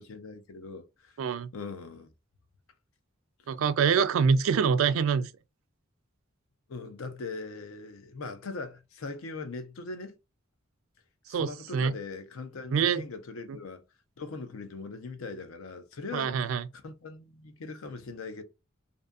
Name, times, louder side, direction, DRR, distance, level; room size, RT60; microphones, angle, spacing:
voice 1, 0.0-1.1 1.5-2.1 6.7-10.2 11.3-13.8 14.2-18.4, left 3 dB, 80° left, 0.5 m, -40 dB
voice 2, 1.2-1.5 3.5-5.3 11.3-11.9 12.7-13.0 13.5-13.6 16.1-16.7, right 6 dB, 75° right, 0.3 m, -25 dB
2.6 x 2.5 x 2.3 m
head